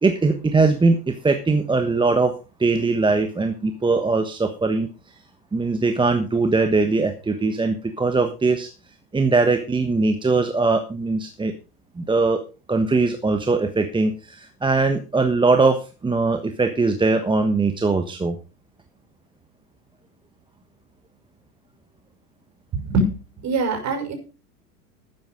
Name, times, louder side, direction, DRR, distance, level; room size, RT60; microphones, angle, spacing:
voice 1, 0.0-2.3 2.6-4.9 5.5-8.7 9.1-11.5 12.0-12.4 12.7-18.4, right 3 dB, 10° right, 6 dB, 1.3 m, -21 dB
voice 2, 22.8-23.1 23.4-24.1, right 2 dB, 35° right, 4 dB, 6.0 m, -22 dB
12.5 x 9.3 x 5.2 m, 0.33 s
hypercardioid pair, 95°, 47 cm